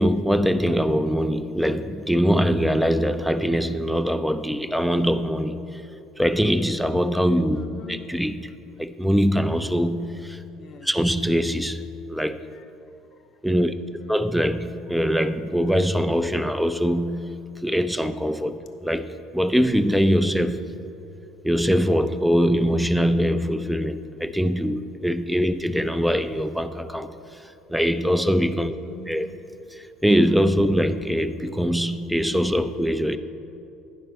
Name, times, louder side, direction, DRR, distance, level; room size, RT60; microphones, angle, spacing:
voice 1, 0.0-5.8 6.2-7.6 7.9-8.5 8.8-10.4 10.8-11.8 12.1-12.4 13.4-13.7 14.1-20.7 21.4-28.7 29.1-29.3 29.7-33.2, equal, ahead, 10 dB, 0.4 m, -23 dB
voice 2, 7.5-8.0 10.5-10.9 12.5-12.6 13.1-13.4 13.7-14.1 28.8-29.3, left 2 dB, 45° left, 6 dB, 0.7 m, -44 dB
9.9 x 5.3 x 5.5 m, 2.7 s
figure-of-eight pair, 60°, 0 cm